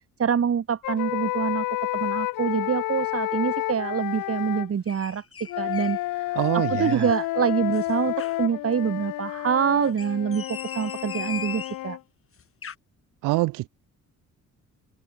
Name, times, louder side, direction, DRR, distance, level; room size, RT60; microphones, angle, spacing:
voice 1, 0.2-1.7 1.9-5.2 5.6-12.0, right 7 dB, 50° right, 5.7 m, -26 dB
sound 1, 0.8-4.7 5.5-12.0, left 18 dB, 90° left, 5.6 m, -30 dB
sound 2, 4.9-6.0 6.4-7.3 7.7-8.4 9.8-11.8 12.4-12.8, left 7 dB, 45° left, 6.8 m, -39 dB
voice 2, 6.4-7.0 13.2-13.7, right 21 dB, 90° right, 0.7 m, -24 dB
cardioid pair, 80°, 31 cm